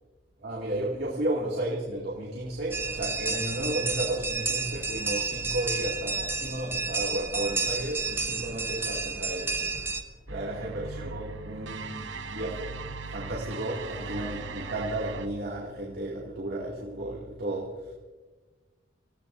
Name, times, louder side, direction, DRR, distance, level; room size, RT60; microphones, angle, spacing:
voice 1, 0.4-9.7 10.3-12.8 13.1-17.7, right 1 dB, 60° right, -3 dB, 2.4 m, -33 dB
sound 1, 2.7-10.0, right 4 dB, 10° right, 0.8 m, -31 dB
sound 2, 10.3-15.3, right 4 dB, 75° right, 1.0 m, -39 dB
27.0 x 16.0 x 2.7 m, 1.3 s
head